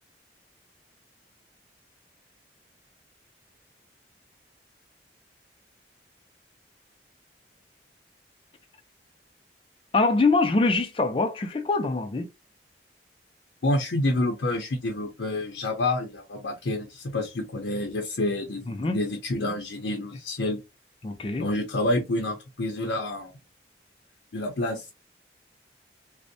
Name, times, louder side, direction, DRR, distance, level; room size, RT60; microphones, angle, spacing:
voice 1, 9.9-12.3 18.7-19.0 21.0-21.5, left 3 dB, 30° left, 0.4 m, -24 dB
voice 2, 13.6-20.6 21.4-23.3 24.3-24.9, left 1 dB, 85° left, 0.6 m, -28 dB
2.5 x 2.1 x 2.6 m
head